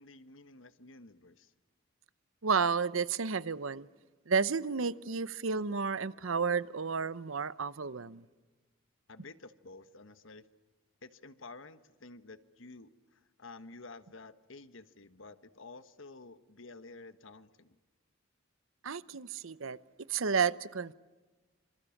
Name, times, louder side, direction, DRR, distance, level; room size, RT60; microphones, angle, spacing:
voice 1, 0.0-1.5 9.1-10.4 11.0-17.8, left 3 dB, 75° left, 1.3 m, -51 dB
voice 2, 2.4-3.9 4.3-8.2 18.8-19.8 20.1-20.9, right 5 dB, 80° right, 0.8 m, -31 dB
27.5 x 26.5 x 7.2 m
head